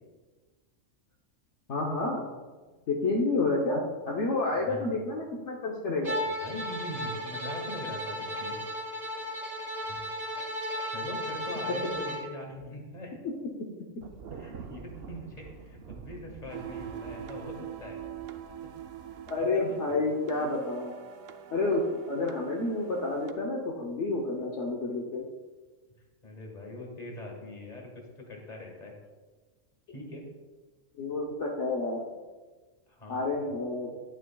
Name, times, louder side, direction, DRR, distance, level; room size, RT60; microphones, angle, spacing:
voice 1, 1.7-2.2 2.9-6.2 19.3-20.9 21.5-21.8 22.1-25.2 31.0-32.0 33.1-33.9, left 2 dB, 70° left, -1 dB, 1.2 m, -29 dB
Bowed string instrument, 6.0-12.3, equal, 35° right, 1.9 m, -35 dB
voice 2, 6.4-8.6 9.9-10.1 10.8-13.2 14.3-18.0 19.4-19.8 26.2-28.9 29.9-30.3 32.9-33.3, left 1 dB, 35° left, 1 dB, 1.7 m, -42 dB
Thunder, 14.0-19.4, right 5 dB, 60° right, 0.8 m, -47 dB
sound 1, 16.5-23.3, right 9 dB, 80° right, 1.0 m, -44 dB
10.0 x 9.1 x 2.3 m, 1.3 s
omnidirectional pair, 1.3 m